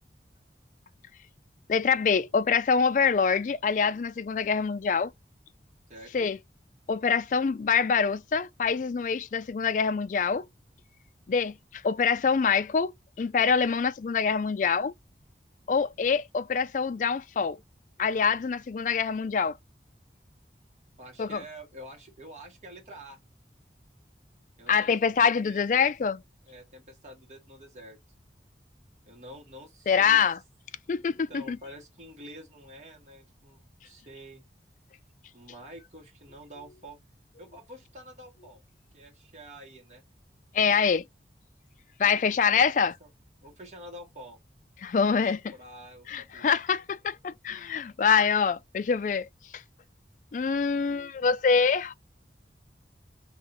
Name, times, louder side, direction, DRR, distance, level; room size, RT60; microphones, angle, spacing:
voice 1, 1.7-5.1 6.1-6.4 6.9-10.5 11.3-14.9 15.7-17.6 18.0-19.6 21.2-21.4 24.7-26.2 29.9-30.4 30.9-31.6 40.5-41.1 42.0-42.9 44.8-45.4 46.1-49.3 49.5-49.6 50.3-51.9, left 6 dB, 45° left, 0.3 m, -25 dB
voice 2, 5.9-6.3 21.0-23.2 24.6-25.9 26.4-28.0 29.0-30.2 31.0-34.4 35.3-37.0 37.4-38.6 38.9-40.0 42.0-43.1 43.4-44.4 45.0-45.2 45.5-46.6, right 1 dB, 40° right, 1.6 m, -47 dB
3.9 x 2.9 x 3.9 m
head